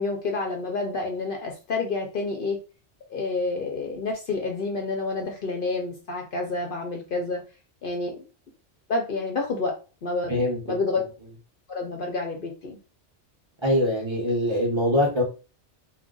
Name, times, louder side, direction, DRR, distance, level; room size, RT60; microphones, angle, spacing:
voice 1, 0.0-2.6 3.1-7.4 7.8-8.2 8.9-9.7 10.0-11.0 11.7-12.8, left 3 dB, 55° left, 2 dB, 0.7 m, -29 dB
voice 2, 10.3-10.6 13.6-15.2, left 1 dB, 25° right, -2 dB, 0.8 m, -23 dB
2.4 x 2.1 x 3.7 m, 0.33 s
omnidirectional pair, 1.2 m